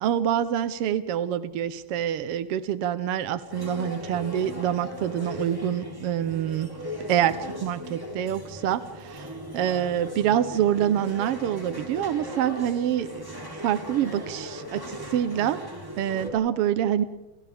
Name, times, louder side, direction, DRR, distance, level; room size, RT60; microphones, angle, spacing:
voice 1, 0.0-6.7 7.1-8.8 9.1-9.3 9.5-15.6 16.0-17.0, right 10 dB, 75° right, 12 dB, 1.4 m, -26 dB
sound 1, 3.5-16.3, equal, 5° right, 3.5 m, -38 dB
29.0 x 28.5 x 3.5 m, 1.1 s
omnidirectional pair, 3.6 m